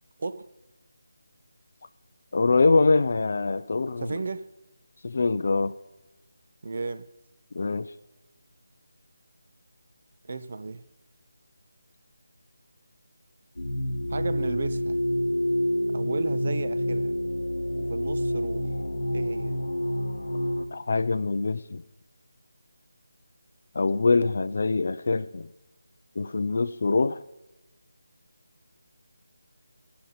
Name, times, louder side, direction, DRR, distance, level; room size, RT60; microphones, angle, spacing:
voice 1, 2.3-4.1 5.0-5.7 7.5-7.9 20.7-21.8 23.7-25.5 26.2-27.2, left 3 dB, 45° left, 0.3 m, -24 dB
voice 2, 4.0-4.5 6.6-7.1 10.2-10.8 14.1-15.0 15.9-17.2 17.7-18.7 19.1-19.6, right 4 dB, 45° right, 0.4 m, -34 dB
sound 1, 13.6-20.6, left 1 dB, 65° left, 1.0 m, -28 dB
16.5 x 5.6 x 4.0 m
figure-of-eight pair, 155°, 0 cm